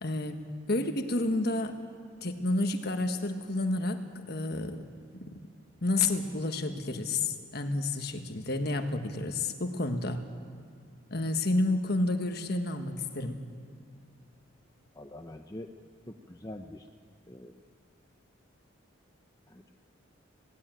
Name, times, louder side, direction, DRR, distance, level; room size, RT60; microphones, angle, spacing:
voice 1, 0.0-1.8 2.2-4.0 4.3-4.8 5.1-5.4 5.8-10.2 11.1-13.4, left 2 dB, 50° left, 7 dB, 1.4 m, -30 dB
voice 2, 15.0-15.7 16.1-16.9 17.3-17.6 19.5-19.7, left 1 dB, 15° left, 5 dB, 0.6 m, -44 dB
18.5 x 17.0 x 9.0 m, 2.2 s
head